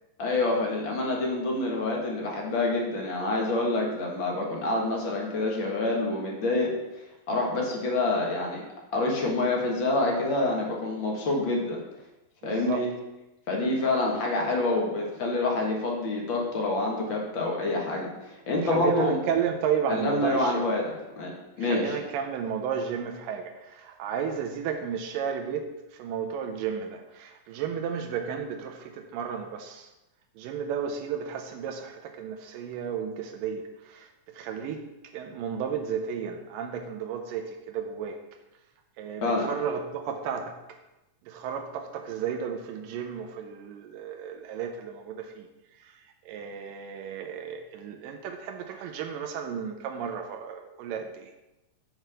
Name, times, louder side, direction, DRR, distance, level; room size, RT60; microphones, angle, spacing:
voice 1, 0.2-6.7 7.3-8.6 8.9-11.8 12.4-12.9 13.5-19.2 19.9-21.3 21.6-21.8 39.2-39.5, left 2 dB, 45° left, -1 dB, 1.7 m, -27 dB
voice 2, 12.4-12.9 18.6-20.7 21.6-29.9 30.4-38.2 39.0-40.8 41.2-51.3, right 7 dB, 85° right, 4 dB, 2.4 m, -33 dB
7.8 x 4.6 x 6.7 m, 0.98 s
omnidirectional pair, 3.8 m